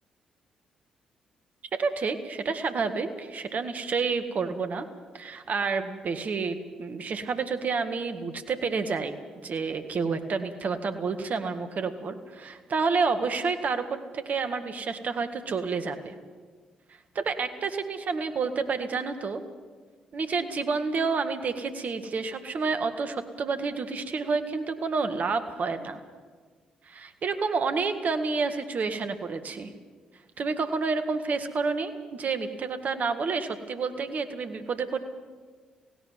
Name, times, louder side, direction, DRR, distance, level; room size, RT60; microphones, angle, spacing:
voice 1, 1.7-4.9 5.1-13.8 14.1-16.1 17.2-19.4 20.1-26.0 26.9-29.7 30.4-35.0, right 4 dB, 50° right, 8 dB, 1.8 m, -29 dB
17.0 x 17.0 x 9.2 m, 1.5 s
hypercardioid pair, 40°, 3 cm